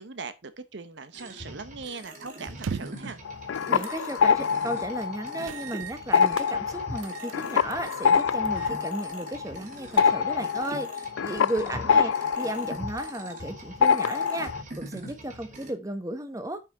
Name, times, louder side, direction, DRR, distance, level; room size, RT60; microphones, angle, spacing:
voice 1, 0.0-3.2 11.5-12.1, right 4 dB, 60° right, 0.8 m, -40 dB
sound 1, 1.1-15.7, right 1 dB, 40° right, 3.2 m, -43 dB
sound 2, 2.5-3.1 3.8-4.0 4.4-4.5 5.4-6.5 7.0-7.4 7.7-8.0 8.5-8.8 9.1-9.2 9.7-10.5, right 6 dB, 80° right, 0.4 m, -39 dB
sound 3, 3.2-5.7 6.0-13.5 13.8-14.6, left 6 dB, 75° left, 0.4 m, -25 dB
voice 2, 3.7-16.6, right 1 dB, 15° right, 1.0 m, -35 dB
8.9 x 5.1 x 4.5 m
head